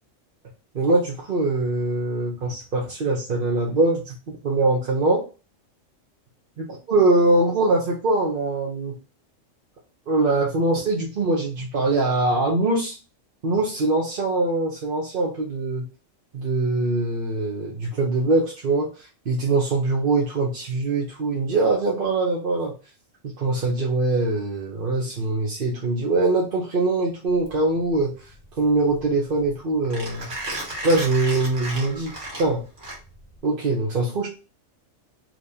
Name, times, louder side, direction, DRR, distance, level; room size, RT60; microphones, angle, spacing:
voice 1, 0.7-4.1 4.4-5.2 6.6-8.9 10.1-13.0 13.4-15.8 16.3-18.9 19.3-22.7 23.4-28.1 28.6-30.3 30.8-32.6 33.4-34.3, right 2 dB, 45° right, -2 dB, 1.0 m, -22 dB
Mechanisms, 27.3-33.4, right 1 dB, 70° right, 2.0 m, -35 dB
5.1 x 3.1 x 2.7 m, 0.32 s
omnidirectional pair, 1.3 m